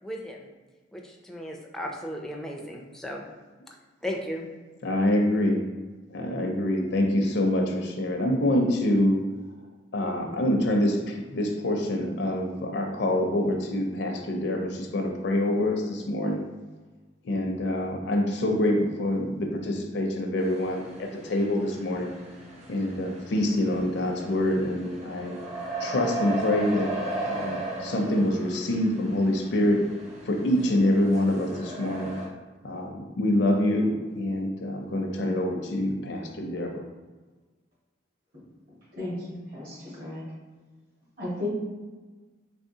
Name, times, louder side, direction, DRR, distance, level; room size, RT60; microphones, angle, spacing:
voice 1, 0.0-0.5 0.9-3.2 4.0-4.4, equal, ahead, -1 dB, 0.4 m, -35 dB
voice 2, 4.8-5.6 6.1-9.2 9.9-16.4 17.2-22.1 22.7-25.4 25.8-29.9 30.3-32.1 32.6-36.8, left 1 dB, 65° left, 2 dB, 0.5 m, -26 dB
sound 1, 20.4-32.3, right 2 dB, 35° right, 0.8 m, -37 dB
voice 3, 38.9-40.2 41.2-41.5, left 2 dB, 55° right, -6 dB, 1.5 m, -34 dB
3.4 x 3.3 x 2.7 m, 1.3 s
head